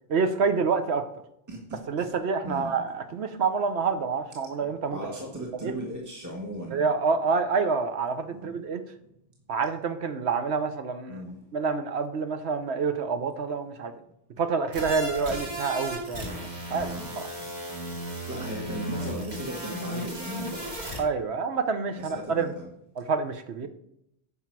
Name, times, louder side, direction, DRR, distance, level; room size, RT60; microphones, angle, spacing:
voice 1, 0.1-1.0 1.9-5.1 5.6-5.7 6.7-8.8 9.5-11.2 11.5-13.9 14.4-17.2 21.0-22.5 23.0-23.7, right 5 dB, 65° right, 8 dB, 1.1 m, -27 dB
voice 2, 1.5-2.1 2.4-2.7 4.6-6.8 8.3-8.6 11.1-11.4 16.7-17.2 18.3-20.6 21.9-22.7, right 1 dB, 15° right, -2 dB, 1.6 m, -37 dB
sound 1, 14.7-21.0, right 1 dB, 35° right, 2.5 m, -35 dB
9.9 x 5.9 x 4.7 m, 0.76 s
omnidirectional pair, 1.2 m